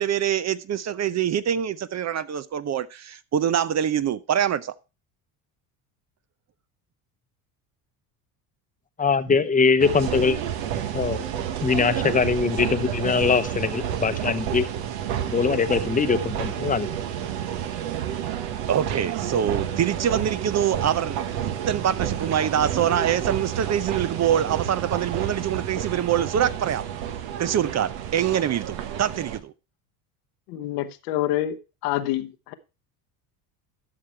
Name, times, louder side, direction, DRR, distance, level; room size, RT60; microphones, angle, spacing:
voice 1, 0.0-4.7 12.0-12.2 15.5-15.8 18.7-21.3 21.7-26.8 27.4-29.5, right 9 dB, 35° right, 0.7 m, -25 dB
voice 2, 9.0-10.4 10.9-11.2 11.6-14.7 15.3-16.9, left 5 dB, 20° left, 0.9 m, -22 dB
sound 1, 9.8-29.4, right 10 dB, 75° right, 1.4 m, -30 dB
voice 3, 30.5-31.6 31.8-32.5, left 13 dB, 80° left, 1.1 m, -27 dB
12.5 x 6.0 x 4.4 m
supercardioid pair, 80°, 45 cm